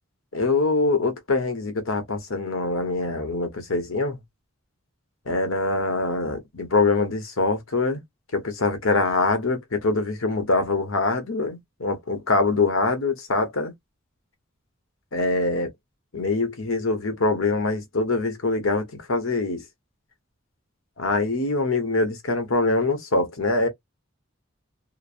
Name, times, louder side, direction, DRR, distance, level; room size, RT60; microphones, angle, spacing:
voice 1, 0.3-4.2 5.3-8.0 8.3-13.7 15.1-15.7 16.1-19.6 21.0-23.7, left 3 dB, 90° left, 1.0 m, -24 dB
3.0 x 2.0 x 2.5 m
head